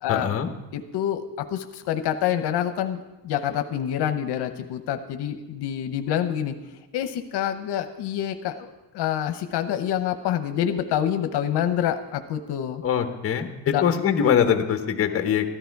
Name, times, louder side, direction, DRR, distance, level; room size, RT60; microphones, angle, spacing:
voice 1, 0.1-0.5 12.8-15.6, left 8 dB, 30° left, 7 dB, 1.0 m, -23 dB
voice 2, 0.7-6.5 6.9-8.7 8.9-12.8 13.7-13.8, left 10 dB, 65° left, 8 dB, 0.8 m, -27 dB
13.5 x 12.0 x 4.6 m, 1.1 s
cardioid pair, 155°, 42 cm